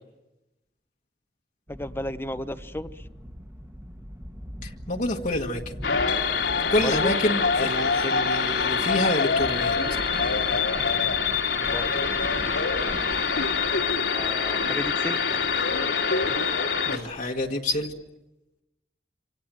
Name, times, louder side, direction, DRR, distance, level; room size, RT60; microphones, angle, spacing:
voice 1, 1.7-3.1 6.8-7.2 11.7-11.9 14.1-15.4, left 1 dB, 15° left, 10 dB, 1.0 m, -33 dB
sound 1, 1.7-18.1, equal, 15° right, 1.5 m, -42 dB
voice 2, 4.6-5.7 6.7-9.8 16.9-17.9, left 1 dB, 50° left, 0 dB, 1.6 m, -27 dB
sound 2, 5.8-17.0, left 5 dB, 90° left, 3.0 m, -25 dB
27.0 x 26.0 x 7.6 m, 0.99 s
head